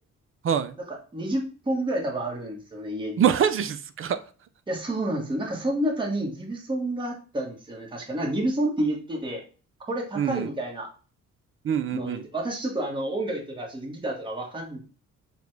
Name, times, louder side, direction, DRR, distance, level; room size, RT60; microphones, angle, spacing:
voice 1, 0.4-0.8 3.2-4.2 10.2-10.5 11.6-12.2, right 8 dB, 45° right, 11 dB, 0.5 m, -24 dB
voice 2, 1.1-3.2 4.7-9.4 9.9-10.9 11.9-14.8, right 1 dB, 15° right, -1 dB, 1.3 m, -29 dB
6.8 x 2.3 x 3.2 m, 0.37 s
cardioid pair, 90°, 30 cm